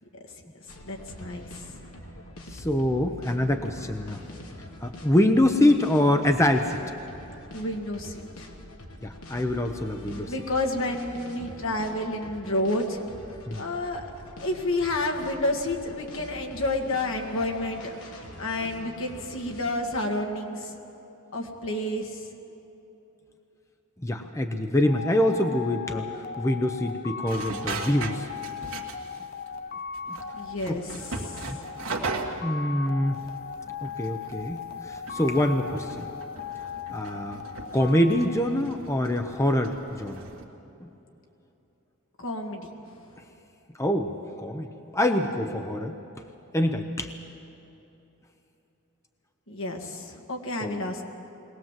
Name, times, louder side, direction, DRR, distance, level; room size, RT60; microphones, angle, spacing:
sound 1, 0.7-19.6, left 1 dB, 85° left, 2.5 m, -45 dB
voice 1, 0.8-1.5 7.5-8.5 10.3-13.0 13.6-14.0 14.4-17.9 18.4-20.7 21.3-22.3 30.3-31.5 42.2-42.7 49.5-51.0, left 1 dB, 65° left, 2 dB, 2.0 m, -30 dB
voice 2, 2.5-4.2 4.8-6.8 9.0-10.3 11.4-11.5 13.5-13.7 24.0-28.3 30.1-30.2 30.7-30.8 31.5-31.6 32.4-33.2 33.8-36.1 36.9-37.4 37.7-40.2 40.8-40.9 43.8-44.7 44.9-46.0 46.5-47.1 50.6-50.8, left 1 dB, 15° left, 5 dB, 0.8 m, -25 dB
sound 2, 24.8-39.3, left 6 dB, 45° left, 0.6 m, -38 dB
sound 3, 27.3-29.2 29.5-29.6 29.9-32.6 33.1-40.5, right 3 dB, 70° right, 1.9 m, -38 dB
22.0 x 18.5 x 7.5 m, 3.0 s
head